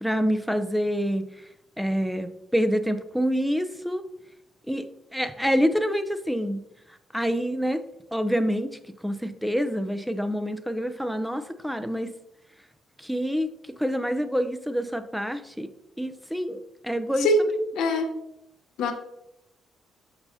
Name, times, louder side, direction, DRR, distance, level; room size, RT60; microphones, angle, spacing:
voice 1, 0.0-1.3 1.8-4.0 4.7-4.8 5.1-6.6 7.1-7.8 8.1-8.7 9.0-12.1 13.0-13.5 13.8-15.7 16.0-17.3, equal, ahead, 10 dB, 0.5 m, -26 dB
voice 2, 17.2-18.2 18.8-18.9, left 1 dB, 85° left, 4 dB, 0.9 m, -23 dB
6.9 x 5.5 x 2.7 m, 0.82 s
cardioid pair, 90°, 0 cm